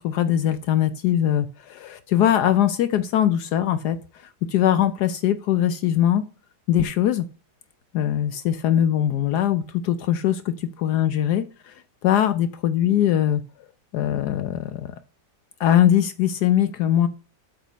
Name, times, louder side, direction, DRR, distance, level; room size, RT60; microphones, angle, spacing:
voice 1, 0.0-4.0 4.5-6.2 6.7-7.3 7.9-11.7 12.0-13.4 13.9-14.9 15.6-17.1, left 11 dB, 70° left, 11 dB, 1.1 m, -21 dB
8.1 x 4.1 x 5.1 m, 0.33 s
omnidirectional pair, 1.9 m